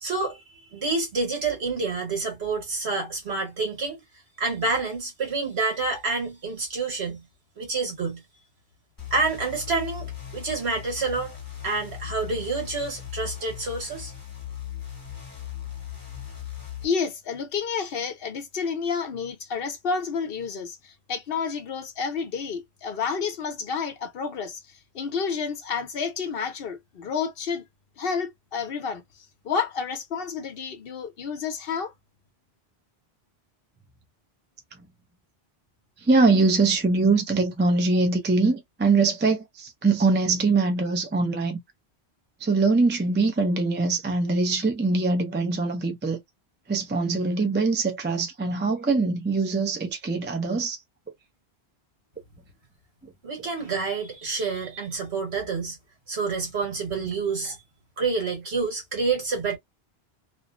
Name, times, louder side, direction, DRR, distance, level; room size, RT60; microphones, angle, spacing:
voice 1, 0.0-0.4 0.7-4.0 4.4-7.2 7.6-8.2 9.1-11.4 11.6-14.1 53.2-55.8 56.1-57.6 58.0-59.6, right 4 dB, 75° right, 1.6 m, -28 dB
sound 1, 9.0-16.8, left 11 dB, 20° left, 1.1 m, -38 dB
voice 2, 16.8-24.6 24.9-27.6 28.0-29.0 29.4-31.9, left 5 dB, 65° left, 0.8 m, -30 dB
voice 3, 36.0-41.6 42.4-46.2 46.7-50.8 57.4-57.5, right 3 dB, 15° right, 0.4 m, -23 dB
3.0 x 2.0 x 2.4 m
omnidirectional pair, 1.1 m